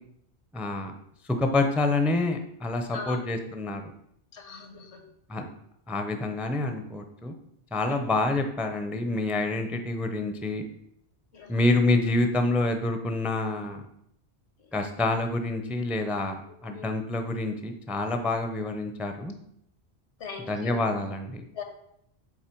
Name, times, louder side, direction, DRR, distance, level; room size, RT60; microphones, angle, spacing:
voice 1, 0.5-0.9 1.3-3.9 5.3-5.5 5.9-7.3 7.7-10.7 11.5-13.9 14.7-19.3 20.5-21.4, left 2 dB, ahead, 6 dB, 0.4 m, -27 dB
voice 2, 2.9-3.3 4.3-5.0 7.9-8.1 11.3-11.6 16.6-17.0 20.2-20.8 21.5-21.6, left 5 dB, 85° left, 5 dB, 1.4 m, -40 dB
7.2 x 4.2 x 4.5 m, 0.74 s
omnidirectional pair, 1.1 m